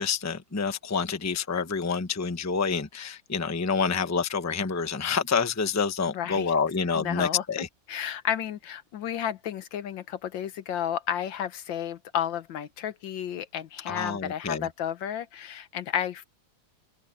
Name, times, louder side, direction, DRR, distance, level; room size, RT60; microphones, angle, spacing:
voice 1, 0.0-7.7 13.9-14.7, left 5 dB, 15° left, 0.7 m, -28 dB
voice 2, 6.1-6.5 6.9-7.4 7.9-16.2, left 10 dB, 80° left, 1.7 m, -32 dB
open air
omnidirectional pair, 2.0 m